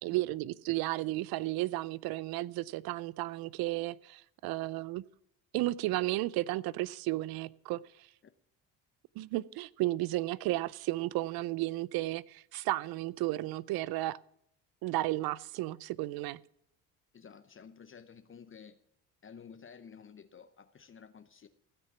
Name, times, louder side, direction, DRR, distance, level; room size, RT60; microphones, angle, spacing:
voice 1, 0.0-5.0 5.5-7.8 9.2-14.2 14.8-16.4, right 17 dB, 65° right, 0.6 m, -33 dB
voice 2, 17.1-18.8 19.2-21.5, left 6 dB, 30° left, 0.8 m, -52 dB
15.5 x 6.7 x 6.0 m
supercardioid pair, 70°, 39 cm